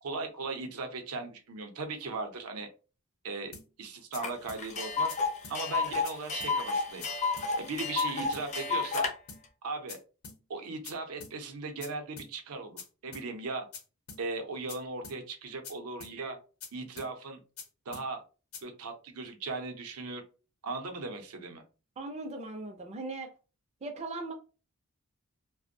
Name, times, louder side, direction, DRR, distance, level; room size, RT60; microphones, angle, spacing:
voice 1, 0.0-2.7 3.2-5.2 5.5-7.1 7.6-9.1 9.6-10.0 10.5-13.7 14.2-16.4 16.7-17.4 17.9-18.2 18.6-20.2 20.6-21.6, right 3 dB, 80° right, 0.6 m, -38 dB
sound 1, 3.5-3.7 4.1-4.2 4.5-4.6 5.1-5.2 5.4-5.6 6.0-6.1 6.4-6.5 7.0-7.1 7.4-7.5 8.0-8.1 8.3-8.5 8.9-9.0 9.3-9.4 9.9-10.0 10.2-10.4 10.8-10.9 11.2-11.3 11.8-11.9 12.2-12.3 12.8-12.9 13.1-13.3 13.7-13.8 14.1-14.2 14.7-14.8 15.0-15.2 15.6-15.7 16.0-16.1 16.6-16.7 17.0-17.1 17.6-17.7 17.9-18.1 18.5-18.6, left 5 dB, 75° left, 0.7 m, -45 dB
Tick, 4.2-4.3 4.6-9.1, left 4 dB, 30° left, 0.4 m, -30 dB
voice 2, 22.0-23.3 23.8-24.3, right 2 dB, 30° right, 0.4 m, -38 dB
2.5 x 2.1 x 2.6 m
head